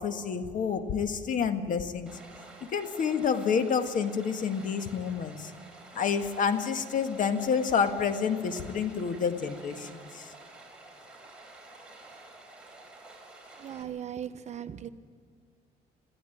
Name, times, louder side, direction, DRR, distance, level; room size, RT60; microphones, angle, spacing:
voice 1, 0.0-2.1 2.7-5.5 6.0-10.3, left 6 dB, 50° left, 8 dB, 1.7 m, -29 dB
Stream, 2.1-13.8, right 2 dB, 5° right, 5.1 m, -50 dB
voice 2, 13.6-14.9, right 9 dB, 40° right, 9 dB, 1.1 m, -38 dB
21.5 x 15.0 x 9.1 m, 2.1 s
cardioid pair, 110°, 17 cm